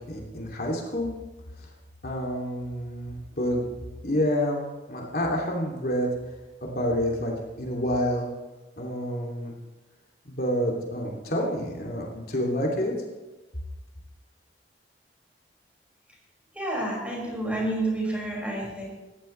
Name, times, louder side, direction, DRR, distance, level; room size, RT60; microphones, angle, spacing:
voice 1, 0.1-1.1 2.0-3.6 4.0-4.6 4.9-6.1 6.6-7.3 7.6-8.3 8.8-9.5 10.2-12.9, equal, 55° left, -2 dB, 3.0 m, -28 dB
voice 2, 16.5-18.8, right 1 dB, 5° right, -3 dB, 6.1 m, -29 dB
20.5 x 15.0 x 3.4 m, 1.2 s
head